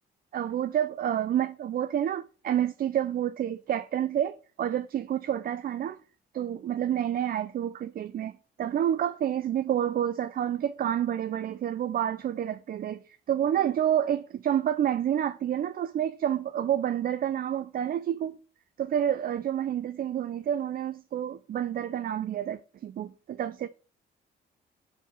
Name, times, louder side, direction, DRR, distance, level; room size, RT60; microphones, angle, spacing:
voice 1, 0.3-6.0 6.3-18.4 18.8-23.7, right 10 dB, 50° right, 0.4 m, -29 dB
5.0 x 4.1 x 5.1 m
cardioid pair, 90°, 20 cm